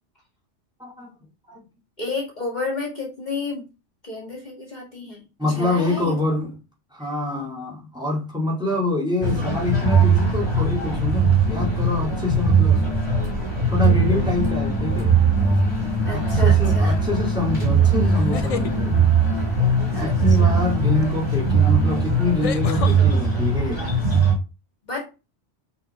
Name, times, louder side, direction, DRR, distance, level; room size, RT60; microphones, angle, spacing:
voice 1, 0.8-1.1 1.5-1.6 5.4-6.5 6.9-12.8 13.7-15.2 16.1-18.9 20.0-23.8, left 2 dB, 5° right, -3 dB, 2.3 m, -26 dB
voice 2, 2.0-3.7 4.0-5.2 5.6-6.2 7.0-7.1 16.1-16.9 19.9-20.6 24.9-25.0, left 3 dB, 40° left, -2 dB, 2.1 m, -31 dB
sound 1, 9.2-24.3, right 4 dB, 40° right, 3.4 m, -20 dB
sound 2, 15.5-16.0 18.1-18.7 21.0-21.1 22.4-23.0, left 6 dB, 60° left, 0.3 m, -30 dB
5.7 x 3.8 x 4.9 m, 0.29 s
omnidirectional pair, 1.2 m